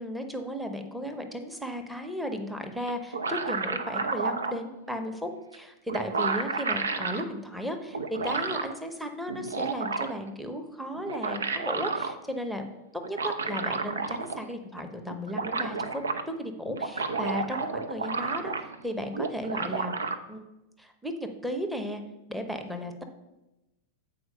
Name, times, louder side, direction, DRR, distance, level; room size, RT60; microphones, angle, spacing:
voice 1, 0.0-12.6 13.1-16.0 16.4-19.9 20.3-20.5 20.8-22.0 22.3-23.0, equal, ahead, 5 dB, 0.8 m, -35 dB
sound 1, 2.9-4.6 5.5-5.6 5.9-7.2 7.9-8.7 9.3-10.3 10.9-12.1 13.0-14.5 14.8-14.9 15.1-16.2 16.7-18.8 19.1-20.2, right 4 dB, 70° right, 0.6 m, -31 dB
7.9 x 4.6 x 5.3 m, 0.98 s
figure-of-eight pair, 90°, 0 cm